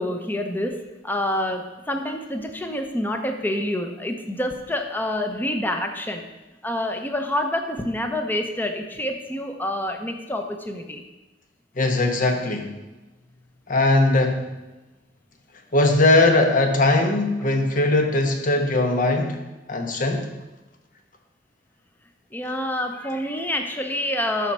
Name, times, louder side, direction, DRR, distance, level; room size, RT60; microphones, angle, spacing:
voice 1, 0.0-6.3 6.6-11.0 22.3-24.5, left 1 dB, 10° left, 5 dB, 0.8 m, -27 dB
voice 2, 11.7-12.8 13.7-14.5 15.7-19.4 19.7-20.3, left 2 dB, 45° left, 4 dB, 1.2 m, -20 dB
11.5 x 4.4 x 6.2 m, 1.1 s
head